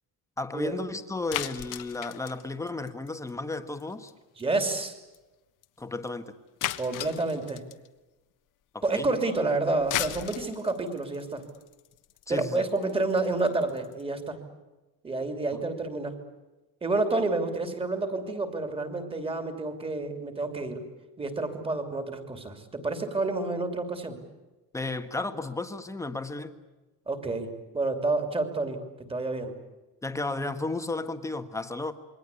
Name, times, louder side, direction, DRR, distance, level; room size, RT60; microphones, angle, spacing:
voice 1, 0.4-4.1 5.8-6.3 8.7-9.1 12.3-12.6 15.5-15.6 24.7-26.5 30.0-31.9, left 2 dB, 10° left, 8 dB, 1.4 m, -33 dB
sound 1, 1.3-3.5 3.8-4.1 4.4-4.5 4.7-4.8 5.1-5.2 5.6-5.7 6.6-7.9 9.7-14.0, left 13 dB, 55° left, 1.3 m, -35 dB
voice 2, 4.4-5.0 6.8-7.6 8.8-11.4 12.3-14.4 15.0-16.2 16.8-20.8 21.2-24.2 27.1-28.8 29.1-29.6, right 3 dB, 15° right, 7 dB, 3.0 m, -29 dB
28.0 x 23.0 x 8.4 m, 1.1 s
cardioid pair, 175°, 37 cm